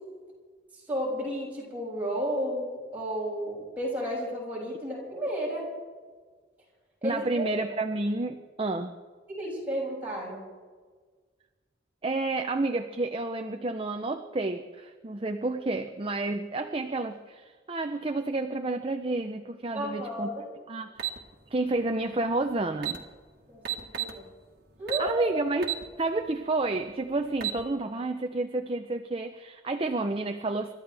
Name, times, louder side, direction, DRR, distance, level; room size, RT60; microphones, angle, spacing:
voice 1, 0.9-5.7 7.0-7.5 9.3-10.4 19.7-20.4 23.5-23.6 24.0-24.2 24.8-25.4, right 1 dB, 10° right, -6 dB, 6.6 m, -32 dB
voice 2, 7.0-8.9 12.0-20.3 20.7-21.2 21.5-23.0 25.0-30.7, right 2 dB, 30° right, 5 dB, 0.6 m, -30 dB
sound 1, 21.0-21.2 22.4-22.5 22.7-23.0 23.6-24.2 24.9-25.1 25.6-25.8 26.3-26.4 27.2-27.6, right 12 dB, 55° right, 1.7 m, -31 dB
29.5 x 13.5 x 3.4 m, 1.5 s
head